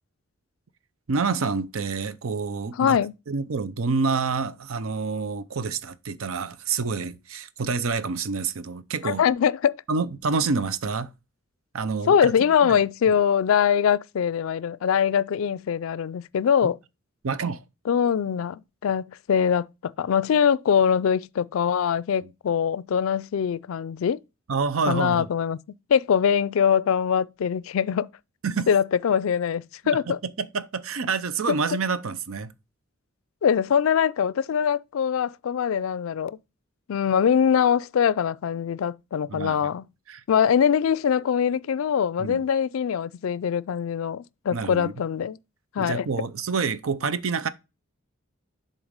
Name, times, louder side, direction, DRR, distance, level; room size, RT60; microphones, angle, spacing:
voice 1, 1.1-3.0 3.3-9.2 9.9-11.1 11.7-12.4 12.6-13.2 16.6-16.7 17.2-17.6 22.2-22.3 24.5-25.3 28.4-28.7 29.8-32.5 39.3-39.6 40.1-40.2 42.2-42.4 44.5-44.9 45.8-47.5, right 4 dB, 85° right, 0.6 m, -28 dB
voice 2, 2.8-3.1 9.0-9.8 12.1-16.8 17.9-24.2 24.9-25.6 25.9-28.1 28.7-30.2 33.4-36.4 36.9-39.8 40.3-45.4 45.8-46.1, left 7 dB, 80° left, 0.3 m, -23 dB
7.1 x 4.1 x 5.1 m
head